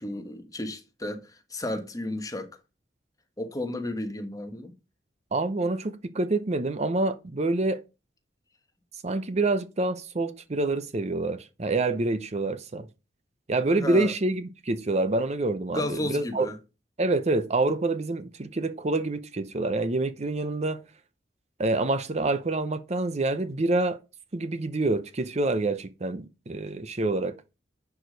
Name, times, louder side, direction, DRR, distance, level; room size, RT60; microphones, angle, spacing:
voice 1, 0.0-2.5 3.4-4.8 13.7-14.1 15.7-16.6, left 1 dB, 20° left, 1.2 m, -33 dB
voice 2, 5.3-7.8 9.0-12.9 13.5-16.5 17.0-20.8 21.6-24.0 24.3-27.4, right 2 dB, 35° right, 0.7 m, -27 dB
10.5 x 4.9 x 5.1 m
head